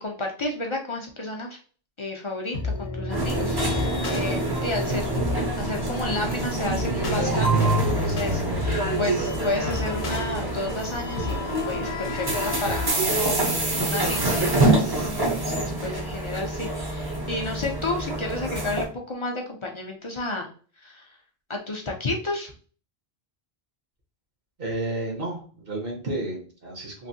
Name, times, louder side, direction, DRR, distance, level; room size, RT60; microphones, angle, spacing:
voice 1, 0.0-1.6 2.0-5.1 5.6-11.4 11.7-13.2 13.8-20.5 20.8-21.0 21.5-22.5, left 2 dB, 40° left, 1 dB, 0.4 m, -32 dB
sound 1, 2.5-12.9, left 3 dB, 60° left, 0.9 m, -32 dB
sound 2, 3.1-18.8, right 2 dB, 25° right, 0.6 m, -26 dB
voice 2, 24.6-27.1, right 2 dB, 65° right, 0 dB, 1.1 m, -31 dB
3.1 x 2.6 x 2.6 m, 0.41 s
omnidirectional pair, 1.0 m